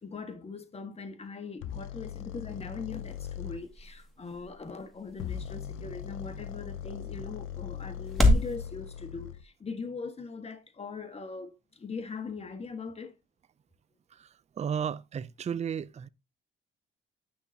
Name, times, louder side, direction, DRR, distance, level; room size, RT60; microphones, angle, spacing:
voice 1, 0.0-13.1, left 4 dB, 30° left, 1.6 m, -40 dB
sound 1, 1.6-3.6 5.1-9.4, left 9 dB, 90° left, 0.6 m, -40 dB
sound 2, 2.3-8.6, left 2 dB, ahead, 2.1 m, -31 dB
voice 2, 14.6-16.1, right 8 dB, 35° right, 0.5 m, -33 dB
10.0 x 5.9 x 2.8 m
cardioid pair, 90°, 20 cm